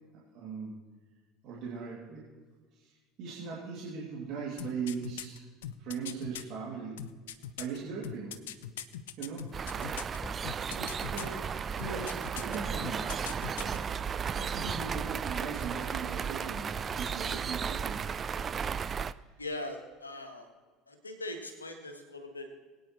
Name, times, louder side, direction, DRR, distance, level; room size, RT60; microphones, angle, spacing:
voice 1, 0.3-0.8 1.4-2.2 2.8-5.4 5.8-7.0 7.6-8.3 9.2-9.5 9.7-9.9 10.7-11.4 11.8-13.9 14.4-18.1 19.2-19.4, right 5 dB, 50° right, -5 dB, 2.7 m, -39 dB
sound 1, 4.6-6.4 7.0-10.2 10.4-11.4 11.8-12.6 12.8-13.8 14.1-14.2, left 10 dB, 70° left, 0.6 m, -41 dB
sound 2, 9.5-19.1, right 7 dB, 30° right, 0.4 m, -34 dB
sound 3, 10.2-11.4 11.7-12.5 14.6-15.9 16.6-17.4, left 1 dB, 15° left, 0.7 m, -50 dB
voice 2, 19.4-20.5 20.9-22.5, left 1 dB, 85° left, 4 dB, 1.6 m, -41 dB
21.5 x 9.3 x 3.2 m, 1.4 s
figure-of-eight pair, 65°, 0 cm